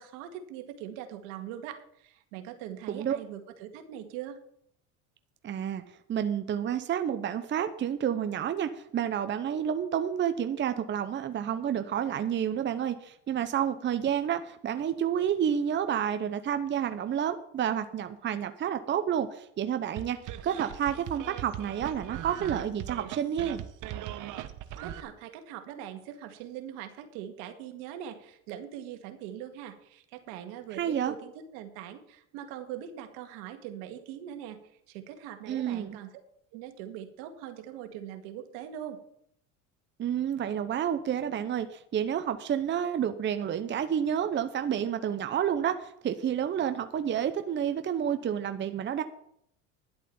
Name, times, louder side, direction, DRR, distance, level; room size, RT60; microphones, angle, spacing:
voice 1, 0.0-4.4 24.8-34.6 34.9-36.1 36.5-39.0, right 10 dB, 75° right, 7 dB, 2.0 m, -42 dB
voice 2, 5.4-5.8 6.1-20.2 20.4-23.6 30.7-31.1 35.5-36.0 40.0-49.0, right 9 dB, 30° right, 9 dB, 0.8 m, -30 dB
sound 1, 20.0-25.0, right 12 dB, 55° right, 1.3 m, -39 dB
11.0 x 8.1 x 7.0 m, 0.71 s
supercardioid pair, 100°, 36 cm